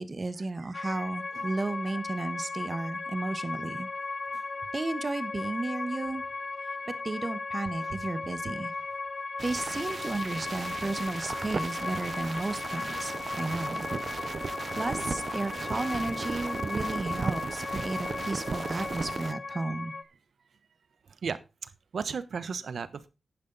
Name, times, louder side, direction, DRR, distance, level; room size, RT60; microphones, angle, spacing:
voice 1, 0.0-3.9 4.7-6.2 7.0-8.7 9.4-13.9 14.1-14.3 14.8-19.9, right 2 dB, 35° right, 13 dB, 1.3 m, -33 dB
voice 2, 0.6-1.0 1.3-2.0 7.8-8.1 11.5-11.6 12.9-13.0 21.2-23.1, right 5 dB, 70° right, 15 dB, 1.0 m, -37 dB
sound 1, 0.7-20.0, left 3 dB, 40° left, 0.9 m, -36 dB
sound 2, 9.4-19.3, right 4 dB, 55° right, 0.8 m, -36 dB
10.5 x 10.0 x 4.0 m, 0.27 s
wide cardioid pair, 100°, 0 cm